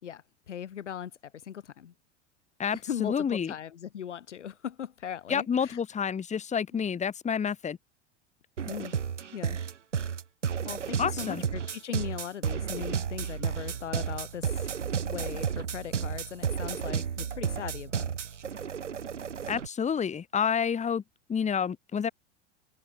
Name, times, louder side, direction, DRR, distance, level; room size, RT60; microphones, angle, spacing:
voice 1, 0.0-1.9 2.7-5.8 6.7-6.8 8.7-8.9 9.3-9.6 10.6-14.7 15.0-18.2, left 9 dB, 75° left, 3.5 m, -39 dB
voice 2, 2.6-3.5 5.3-7.8 11.0-11.4 19.5-21.0 21.3-22.1, left 7 dB, 20° left, 2.3 m, -29 dB
sound 1, 8.6-19.7, right 7 dB, 85° right, 2.6 m, -32 dB
hypercardioid pair, 90°, 35 cm